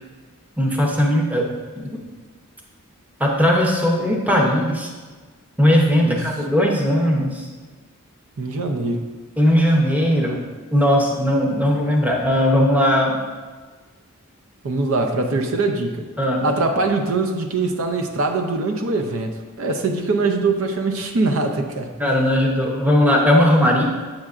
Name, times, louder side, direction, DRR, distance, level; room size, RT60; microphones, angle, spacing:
voice 1, 0.6-1.5 1.8-1.9 3.2-4.9 5.6-7.5 9.4-10.4 10.7-13.2 16.2-16.5 22.0-23.8, equal, 5° right, -1 dB, 0.7 m, -18 dB
voice 2, 8.4-9.1 14.6-16.1 16.4-21.9, right 3 dB, 65° right, 4 dB, 0.5 m, -22 dB
7.4 x 6.4 x 2.4 m, 1.4 s
head